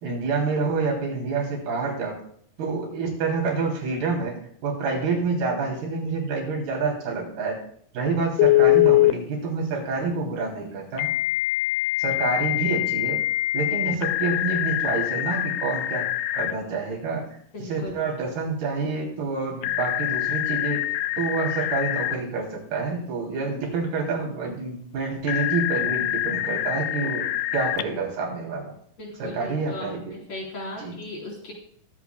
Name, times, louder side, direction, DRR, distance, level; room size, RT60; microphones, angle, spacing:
voice 1, 0.0-2.2 2.6-4.4 4.6-7.6 7.9-11.1 12.0-13.2 13.5-16.1 16.3-17.2 17.6-20.8 21.2-28.7 29.2-30.1 30.8-31.0, right 4 dB, 85° right, -1 dB, 5.1 m, -28 dB
Telephone, 8.4-9.1 11.0-16.5 19.6-22.2 25.3-27.8, left 16 dB, 85° left, 2.4 m, -24 dB
voice 2, 17.5-18.0 29.0-31.5, left 2 dB, 45° left, -3 dB, 5.1 m, -37 dB
22.5 x 8.2 x 2.3 m, 0.64 s
omnidirectional pair, 4.3 m